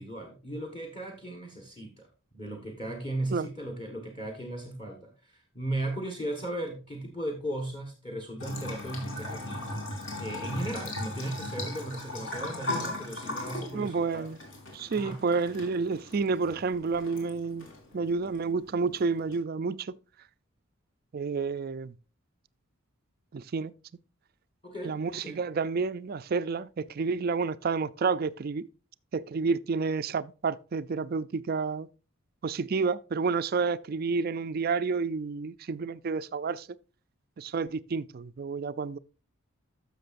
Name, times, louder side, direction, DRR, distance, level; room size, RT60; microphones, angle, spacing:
voice 1, 0.0-2.1 2.3-9.7 10.2-14.3 14.9-15.2 24.6-25.4, right 1 dB, 25° left, 1.4 m, -36 dB
Bathtub (filling or washing) / Trickle dribble, 8.4-19.4, left 1 dB, 60° left, 3.0 m, -38 dB
voice 2, 13.7-14.4 14.7-17.7 17.9-20.0 21.1-21.9 23.3-23.7 24.8-28.7 29.1-31.9 32.4-36.7 37.4-39.0, right 4 dB, 45° right, 0.4 m, -30 dB
13.0 x 6.5 x 2.5 m
head